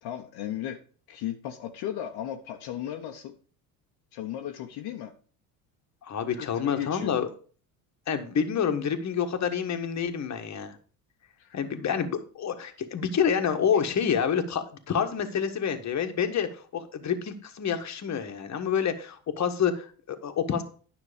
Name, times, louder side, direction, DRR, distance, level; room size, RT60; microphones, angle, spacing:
voice 1, 0.0-0.8 1.1-3.4 4.1-5.1 6.3-7.2 11.4-11.6, left 11 dB, 65° left, 3 dB, 1.1 m, -35 dB
voice 2, 6.0-7.3 8.1-10.7 11.5-20.6, left 7 dB, 40° left, 7 dB, 1.5 m, -28 dB
9.9 x 6.0 x 5.0 m, 0.42 s
supercardioid pair, 75°, 43 cm